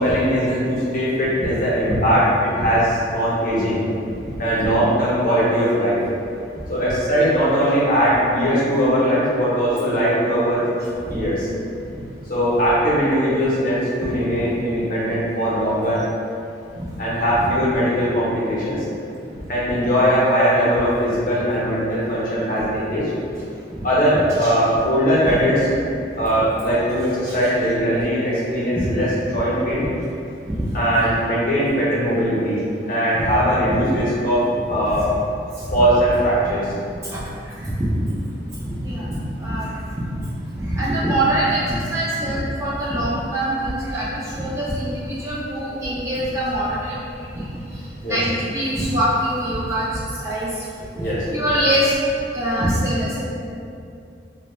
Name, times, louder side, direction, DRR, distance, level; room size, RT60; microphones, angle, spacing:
voice 1, 0.0-3.8 4.4-6.0 6.7-10.7 11.1-11.5 12.3-16.0 17.0-18.9 19.5-23.0 23.8-25.6 26.2-29.9 30.7-32.6 32.9-35.0 35.7-36.7 48.0-48.2 51.0-51.2, equal, 50° left, -8 dB, 0.6 m, -20 dB
voice 2, 37.6-37.9 38.6-39.1 39.4-39.7 40.1-40.2 40.6-46.8 47.4-47.5 48.1-50.5 51.3-51.9 52.3-53.2, right 1 dB, 15° right, -8 dB, 0.3 m, -23 dB
2.2 x 2.0 x 3.0 m, 2.5 s
head